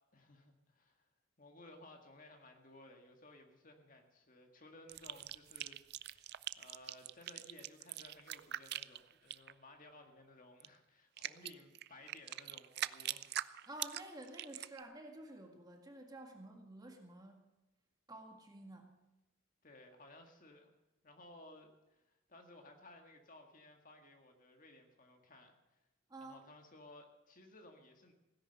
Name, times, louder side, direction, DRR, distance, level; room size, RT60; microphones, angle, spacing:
voice 1, 0.1-1.1 1.4-13.3 19.6-20.7 21.0-25.8 26.2-28.1, left 1 dB, 40° left, 4 dB, 1.8 m, -58 dB
sound 1, 4.9-9.5 10.6-10.7 11.2-14.8, right 13 dB, 50° right, 0.4 m, -42 dB
voice 2, 13.7-17.4 18.1-18.9 26.1-26.4, right 1 dB, 20° right, 3 dB, 1.8 m, -51 dB
16.5 x 10.5 x 6.7 m, 1.0 s
head